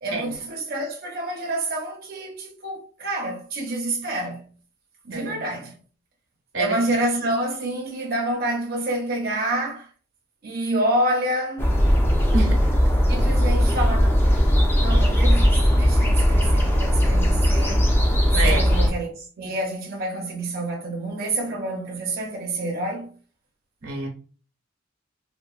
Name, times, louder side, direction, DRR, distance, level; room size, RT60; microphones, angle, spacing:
voice 1, 0.0-4.5 5.0-5.7 6.6-9.9 10.4-11.7 13.1-14.1 14.8-17.8 18.3-23.1, right 1 dB, 50° right, 0.6 m, -28 dB
sound 1, 11.6-18.9, equal, 10° left, 0.4 m, -18 dB
voice 2, 18.3-18.8 23.8-24.1, right 3 dB, 90° right, 0.9 m, -27 dB
2.9 x 2.1 x 2.3 m
head